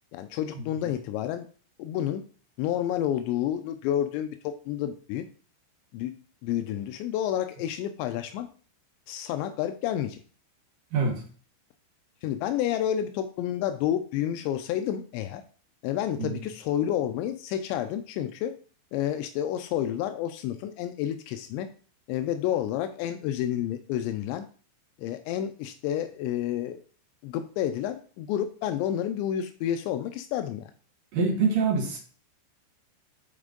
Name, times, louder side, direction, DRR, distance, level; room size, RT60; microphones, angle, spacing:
voice 1, 0.1-1.5 1.8-2.2 2.6-5.2 5.9-6.1 6.4-8.5 9.1-10.2 12.2-15.4 15.8-18.5 18.9-21.7 22.1-24.5 25.0-26.8 27.2-30.7, left 11 dB, 85° left, 8 dB, 2.5 m, -30 dB
voice 2, 10.9-11.2 16.2-16.4 31.1-32.0, right 4 dB, 60° right, 0 dB, 2.5 m, -25 dB
9.8 x 4.4 x 3.8 m, 0.41 s
omnidirectional pair, 5.7 m